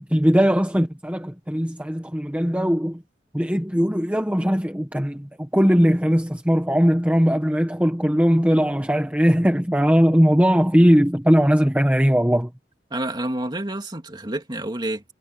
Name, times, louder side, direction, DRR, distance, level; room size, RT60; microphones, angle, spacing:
voice 1, 0.0-3.0 3.3-12.5, equal, 10° right, 1.4 m, -19 dB
voice 2, 12.9-15.0, right 1 dB, 25° right, 2.5 m, -29 dB
head